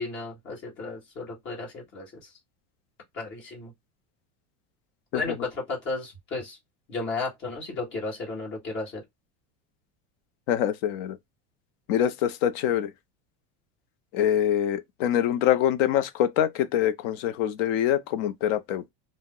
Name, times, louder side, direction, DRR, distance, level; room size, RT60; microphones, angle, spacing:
voice 1, 0.0-2.3 3.1-3.7 5.1-6.6 6.9-9.0, left 3 dB, 30° left, 1.3 m, -34 dB
voice 2, 10.5-11.2 11.9-12.9 14.1-18.9, left 10 dB, 50° left, 0.4 m, -24 dB
2.7 x 2.1 x 3.6 m
cardioid pair, 180°, 39 cm